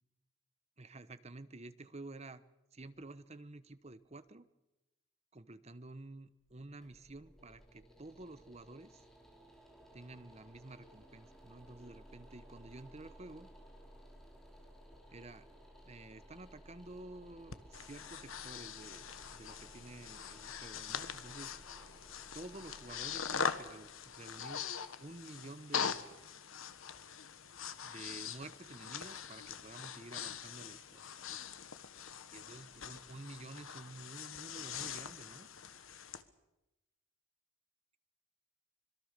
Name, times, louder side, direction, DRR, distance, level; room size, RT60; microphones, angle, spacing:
voice 1, 0.8-2.4 2.7-4.5 5.3-9.0 9.9-13.5 15.1-15.5 15.8-21.5 22.3-26.1 27.8-31.1 32.3-35.5, right 2 dB, 30° right, 13 dB, 1.0 m, -51 dB
sound 1, 6.4-25.4, equal, ahead, 3.4 m, -58 dB
Breathing, 17.5-36.2, left 7 dB, 75° left, 1.3 m, -43 dB
25.5 x 22.5 x 6.7 m, 0.97 s
head